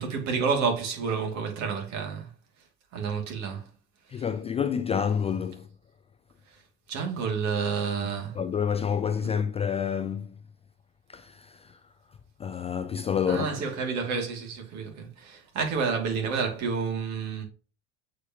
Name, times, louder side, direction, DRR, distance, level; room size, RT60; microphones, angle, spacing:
voice 1, 0.0-2.3 2.9-3.7 4.1-4.2 6.5-6.6 6.9-8.4 13.3-17.5, right 5 dB, 55° right, 2.7 m, -29 dB
voice 2, 4.1-5.7 8.4-10.4 11.1-11.5 12.4-13.5, left 7 dB, 20° left, 0.3 m, -28 dB
8.2 x 5.0 x 3.0 m
supercardioid pair, 115°, 33 cm